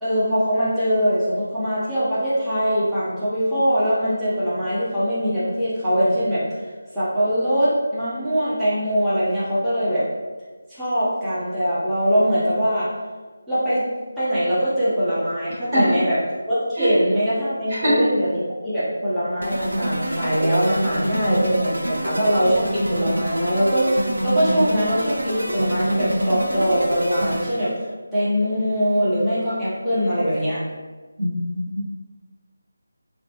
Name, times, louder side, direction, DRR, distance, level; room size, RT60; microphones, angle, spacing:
voice 1, 0.0-6.4 6.9-10.1 10.7-12.9 13.5-13.9 14.2-16.2 16.5-27.7 28.1-30.6, equal, 5° right, -15 dB, 0.8 m, -22 dB
sound 1, 19.4-27.7, right 1 dB, 90° right, 0.7 m, -26 dB
voice 2, 31.2-31.8, equal, 30° right, -11 dB, 1.1 m, -21 dB
3.8 x 2.2 x 2.8 m, 1.3 s
figure-of-eight pair, 165°, 0 cm